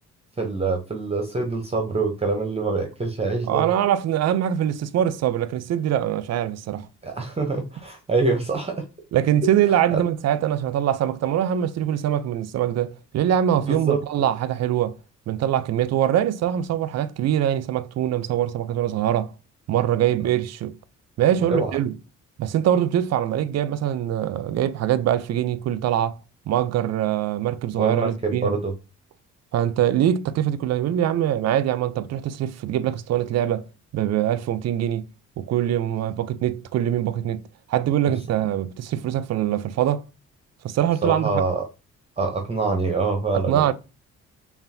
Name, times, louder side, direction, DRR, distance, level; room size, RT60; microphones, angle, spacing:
voice 1, 0.4-3.7 7.0-8.8 9.4-9.5 9.9-10.0 13.6-14.0 21.5-21.7 27.8-28.7 38.1-38.2 41.0-41.7 42.2-43.7, right 3 dB, 20° right, 0.7 m, -25 dB
voice 2, 3.5-6.9 9.1-15.0 15.3-19.3 19.7-20.8 21.2-21.9 22.4-26.2 26.5-28.6 29.5-33.6 33.9-35.0 35.4-37.4 37.7-40.0 40.6-41.3 43.3-43.7, right 11 dB, 60° right, 0.5 m, -23 dB
5.5 x 2.4 x 2.6 m
cardioid pair, 90°, 30 cm